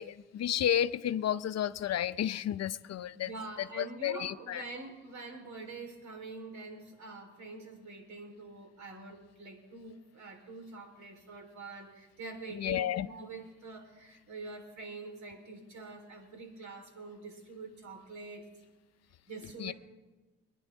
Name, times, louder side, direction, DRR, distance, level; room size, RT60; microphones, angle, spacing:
voice 1, 0.0-3.3 3.8-4.6 12.5-13.1 19.6-19.7, left 10 dB, 55° left, 0.6 m, -32 dB
voice 2, 3.1-18.5 19.3-19.7, right 3 dB, 65° right, 4.0 m, -45 dB
27.0 x 10.0 x 3.6 m
supercardioid pair, 60°, 31 cm